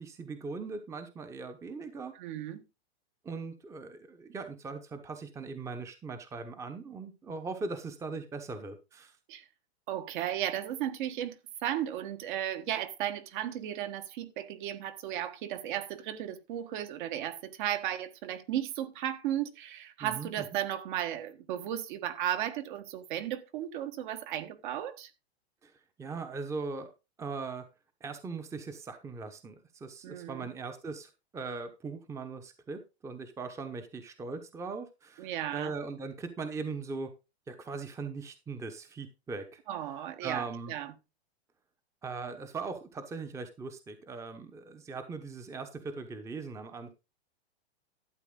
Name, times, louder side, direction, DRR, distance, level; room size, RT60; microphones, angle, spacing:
voice 1, 0.0-2.1 3.2-9.2 20.0-20.4 25.6-26.9 27.2-27.7 28.0-37.1 37.5-39.6 40.2-40.7 42.0-46.9, right 4 dB, 10° right, 1.0 m, -40 dB
voice 2, 2.1-2.6 9.3-9.5 9.9-25.1 30.0-30.5 35.2-35.7 39.7-40.9, right 11 dB, 50° right, 1.5 m, -35 dB
12.0 x 8.4 x 3.8 m
hypercardioid pair, 150°, 32 cm